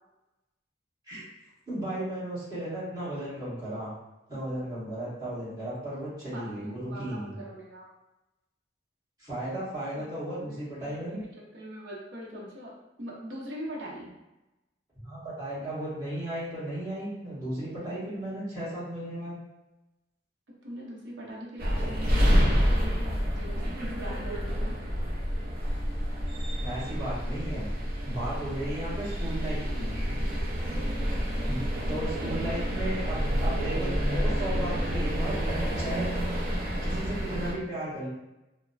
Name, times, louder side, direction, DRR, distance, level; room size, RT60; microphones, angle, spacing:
voice 1, 1.7-3.9 4.3-7.4 9.2-11.3 14.9-19.4 22.4-22.5 26.6-27.7 28.0-29.9 31.5-35.4 35.7-36.1 36.8-38.1, right 1 dB, 20° right, -11 dB, 1.5 m, -35 dB
voice 2, 6.3-7.9 10.0-10.1 10.4-12.7 13.0-14.1 20.6-24.8 29.6-30.1 36.4-36.5, equal, 90° right, -4 dB, 0.8 m, -42 dB
sound 1, 21.6-37.5, equal, 55° right, 0.6 m, -28 dB
3.0 x 2.1 x 2.5 m, 0.98 s
head